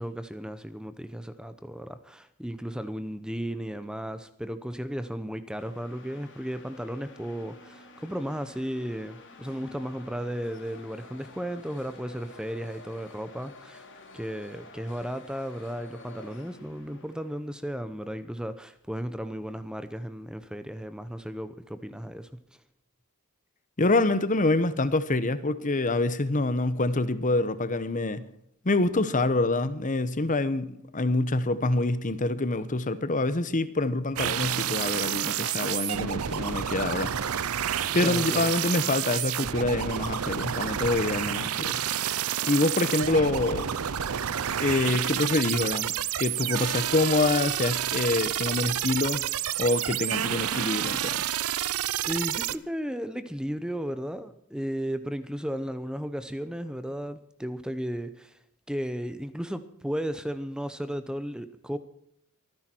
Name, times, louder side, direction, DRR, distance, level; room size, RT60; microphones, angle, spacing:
voice 1, 0.0-13.8 14.1-22.4 38.0-38.5 52.0-58.4 58.7-61.8, equal, 5° right, 11 dB, 0.8 m, -34 dB
sound 1, 5.6-17.9, left 3 dB, 55° left, 3.3 m, -50 dB
voice 2, 23.8-28.2 28.6-37.1 37.9-41.8 42.4-43.7 44.6-45.9 46.2-49.2 49.6-51.2, left 2 dB, 35° left, 14 dB, 1.0 m, -26 dB
sound 2, 34.2-52.6, right 10 dB, 75° right, 0.6 m, -29 dB
24.0 x 10.5 x 4.5 m, 0.72 s
head